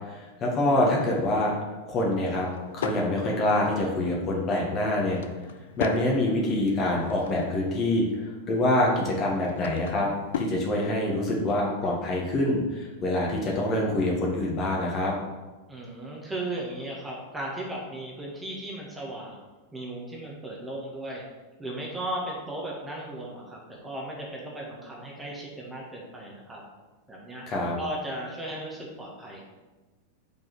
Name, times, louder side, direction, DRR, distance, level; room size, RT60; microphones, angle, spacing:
voice 1, 0.1-1.5 1.9-2.5 2.7-5.2 5.8-10.1 10.4-15.1 27.5-27.7, left 1 dB, 30° left, -2 dB, 1.8 m, -25 dB
Drawer open or close / Wood, 2.1-3.1 4.8-6.1 6.6-7.8 9.1-10.6, left 7 dB, 60° left, 0.5 m, -37 dB
voice 2, 15.7-19.4 19.7-21.2 21.6-26.6 27.1-27.4 27.8-29.5, right 1 dB, 10° right, -3 dB, 1.7 m, -36 dB
5.5 x 4.7 x 6.3 m, 1.2 s
figure-of-eight pair, 90°, 0 cm